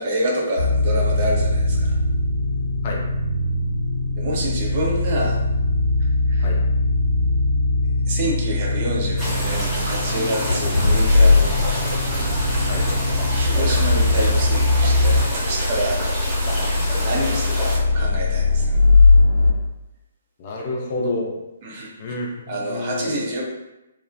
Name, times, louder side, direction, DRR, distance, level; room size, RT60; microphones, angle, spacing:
voice 1, 0.0-2.0 4.2-5.4 6.3-6.5 8.1-11.6 13.3-16.0 16.3-16.6 17.0-18.8 21.6-21.9 22.5-23.4, right 1 dB, 40° right, -2 dB, 0.6 m, -27 dB
sound 1, 0.6-15.2, left 2 dB, 80° right, 0.9 m, -22 dB
sound 2, 9.2-17.8, equal, 5° right, 0.8 m, -29 dB
Accelerating revving vroom, 9.9-19.5, left 3 dB, 75° left, 0.7 m, -20 dB
voice 2, 20.4-21.3 22.0-23.2, left 2 dB, 40° left, -1 dB, 0.5 m, -29 dB
2.5 x 2.0 x 2.5 m, 0.95 s
figure-of-eight pair, 130°, 0 cm